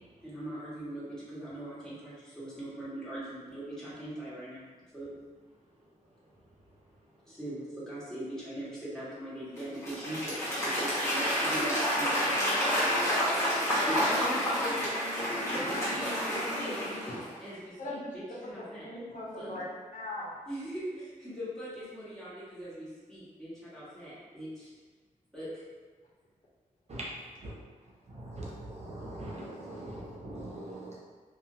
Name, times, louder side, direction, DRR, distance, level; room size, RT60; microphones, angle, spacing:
voice 1, 0.2-4.7 4.9-5.1 7.3-11.6 12.0-12.2 13.8-18.2 18.5-18.9 19.4-19.5 20.5-24.7 25.3-25.5, equal, 5° left, -11 dB, 1.5 m, -40 dB
Applause / Crowd, 9.6-17.3, equal, 20° left, 1.2 m, -29 dB
voice 2, 11.6-12.1 12.6-14.2 14.5-14.7 15.5-15.9 16.5-16.7 17.8-18.4 18.8-19.6 19.9-20.3, left 1 dB, 75° left, -7 dB, 0.8 m, -38 dB
voice 3, 28.1-30.9, right 1 dB, 50° right, -4 dB, 0.7 m, -41 dB
2.7 x 2.5 x 2.7 m, 1.4 s
cardioid pair, 75°, 14 cm